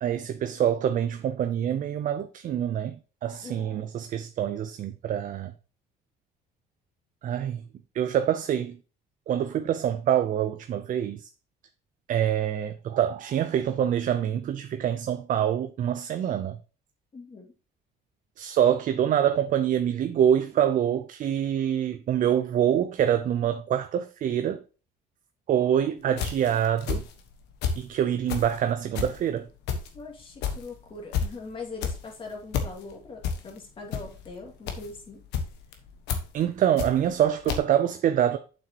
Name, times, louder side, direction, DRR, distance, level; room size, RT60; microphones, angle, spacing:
voice 1, 0.0-5.5 7.2-7.6 7.9-8.8 9.3-11.3 12.1-16.6 18.4-24.6 25.5-27.0 27.8-29.5 36.3-38.4, right 10 dB, 50° right, 0.5 m, -25 dB
voice 2, 3.4-3.8 17.1-17.5 29.9-35.2, left 3 dB, 30° left, 2.4 m, -41 dB
sound 1, 26.1-27.9 28.2-37.2 37.5-37.6, left 6 dB, 85° left, 1.3 m, -31 dB
7.6 x 6.1 x 2.9 m
cardioid pair, 110°, 17 cm